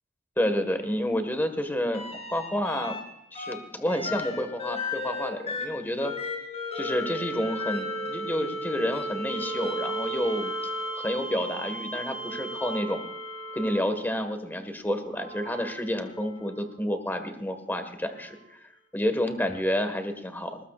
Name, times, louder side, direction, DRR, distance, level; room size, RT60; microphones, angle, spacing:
voice 1, 0.4-3.0 3.3-6.1 6.7-10.5 10.9-13.0 13.5-18.6 18.9-20.6, left 1 dB, 10° left, 7 dB, 1.6 m, -29 dB
sound 1, 1.9-3.0 3.3-14.1 15.0-16.5 18.3-18.4, equal, 35° left, 4.6 m, -35 dB
21.0 x 20.0 x 2.5 m, 0.85 s
head